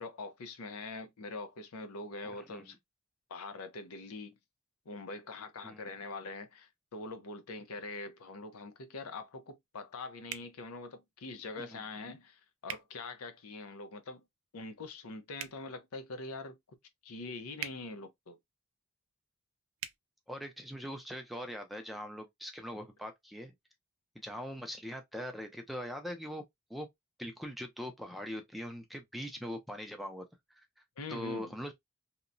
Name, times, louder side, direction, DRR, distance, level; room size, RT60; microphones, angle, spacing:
voice 1, 0.0-2.8 3.3-4.4 4.9-14.2 14.5-16.6 17.0-18.4 31.0-31.5, left 3 dB, 90° left, 0.6 m, -43 dB
voice 2, 2.2-2.8 5.6-5.8 11.6-11.8 20.3-23.5 24.2-26.4 26.7-26.9 27.2-30.2 31.1-31.7, equal, ahead, 0.4 m, -41 dB
sound 1, 10.3-10.5 12.6-12.8 15.3-15.6 17.6-17.8 19.8-20.0, right 10 dB, 75° right, 0.4 m, -40 dB
2.9 x 2.1 x 2.5 m
head